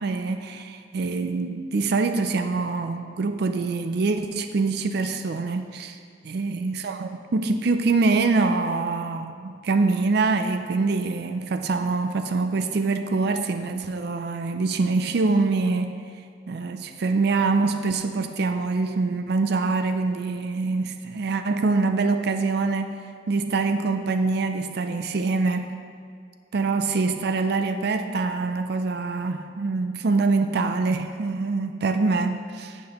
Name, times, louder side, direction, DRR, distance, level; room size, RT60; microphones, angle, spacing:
voice 1, 0.0-6.0 6.3-16.0 16.5-23.0 23.3-25.7 26.5-32.8, right 3 dB, 60° right, 8 dB, 0.4 m, -24 dB
11.0 x 7.5 x 3.0 m, 2.1 s
head